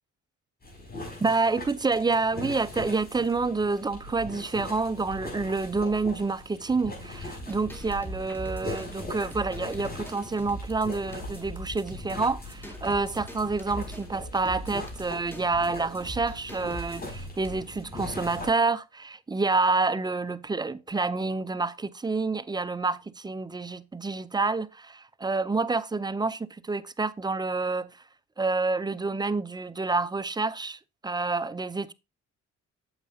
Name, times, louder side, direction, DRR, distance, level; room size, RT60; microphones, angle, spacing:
sound 1, 0.6-18.5, left 1 dB, 30° left, 5.3 m, -40 dB
voice 1, 1.2-27.9 28.4-31.9, right 3 dB, 15° right, 0.4 m, -28 dB
sound 2, 7.2-17.5, equal, 5° left, 1.8 m, -42 dB
8.9 x 7.4 x 2.6 m
cardioid pair, 90°, 30 cm